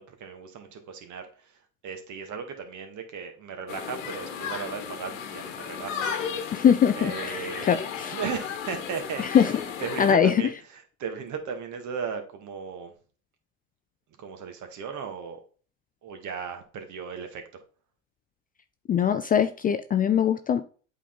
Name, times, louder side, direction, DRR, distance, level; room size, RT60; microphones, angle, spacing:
voice 1, 0.0-1.6 1.8-6.0 6.3-6.5 7.0-7.8 8.1-9.5 9.8-12.9 14.2-15.4 16.0-17.4, right 6 dB, 50° right, 6 dB, 1.8 m, -36 dB
sound 1, 3.7-10.1, left 7 dB, 80° left, 1.2 m, -34 dB
voice 2, 6.5-8.2 9.2-9.5 10.0-10.4 18.9-20.6, left 8 dB, 25° left, 10 dB, 0.4 m, -22 dB
8.2 x 3.9 x 3.8 m, 0.40 s
hypercardioid pair, 85°, 38 cm